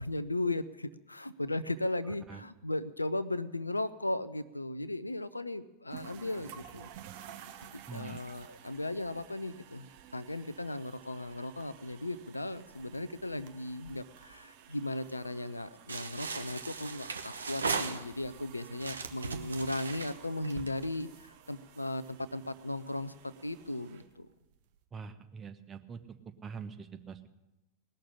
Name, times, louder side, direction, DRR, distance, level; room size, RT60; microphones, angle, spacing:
voice 1, 0.0-6.9 7.6-9.9 10.1-24.3, left 2 dB, 85° left, 15 dB, 0.5 m, -36 dB
sound 1, 5.9-24.8, right 10 dB, 50° right, 1.1 m, -53 dB
voice 2, 7.9-8.2 24.9-26.0 26.4-27.4, right 6 dB, 20° right, 7 dB, 1.0 m, -44 dB
sound 2, 15.9-18.4 18.8-21.0, right 4 dB, 75° right, 0.9 m, -37 dB
19.0 x 6.6 x 9.9 m, 1.0 s
figure-of-eight pair, 90°, 0 cm